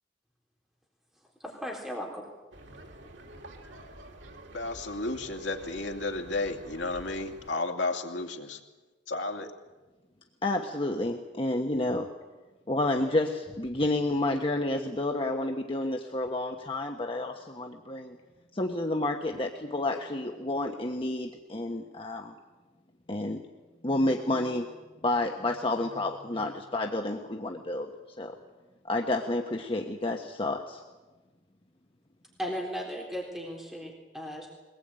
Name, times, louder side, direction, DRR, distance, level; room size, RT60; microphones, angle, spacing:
voice 1, 1.4-2.3 3.2-3.3 32.4-34.5, equal, 5° right, -2 dB, 3.8 m, -36 dB
sound 1, 2.5-7.5, right 1 dB, 75° right, 2.8 m, -48 dB
voice 2, 4.5-8.6 9.1-9.5, left 2 dB, 70° left, 3 dB, 2.6 m, -32 dB
voice 3, 10.4-12.1 12.7-18.2 18.5-22.3 23.1-23.4 23.8-24.7 25.0-27.9 28.2-28.3 28.9-30.8, left 2 dB, 30° left, 2 dB, 1.3 m, -30 dB
23.0 x 19.5 x 9.0 m, 1.2 s
head